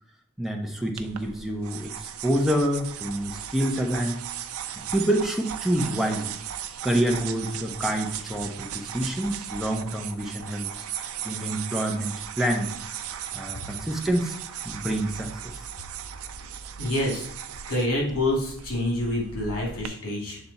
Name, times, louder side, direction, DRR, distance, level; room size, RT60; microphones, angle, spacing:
voice 1, 0.4-4.1 4.9-6.4 6.8-12.7 13.3-14.4 14.6-15.5, right 1 dB, ahead, 1 dB, 0.7 m, -27 dB
sound 1, 1.0-19.9, right 9 dB, 80° right, 0.4 m, -37 dB
voice 2, 16.8-17.3 17.7-20.4, left 1 dB, 85° left, -2 dB, 2.4 m, -27 dB
7.0 x 3.4 x 4.0 m, 0.66 s
head